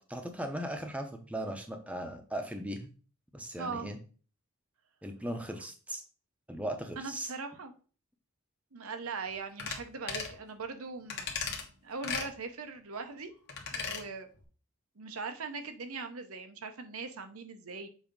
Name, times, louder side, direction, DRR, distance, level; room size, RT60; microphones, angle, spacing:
voice 1, 0.1-2.9 3.3-4.0 5.0-6.0 6.5-7.3, right 1 dB, 5° right, 5 dB, 0.7 m, -38 dB
voice 2, 3.5-3.9 7.0-7.7 8.7-13.3 13.7-14.3 15.0-17.9, right 4 dB, 80° right, 7 dB, 0.9 m, -40 dB
sound 1, 9.6-9.8 10.1-10.4 11.1-11.6 12.0-12.3 13.5-14.0 14.4-14.5, left 5 dB, 50° left, 1.3 m, -36 dB
7.2 x 2.8 x 5.2 m, 0.39 s
head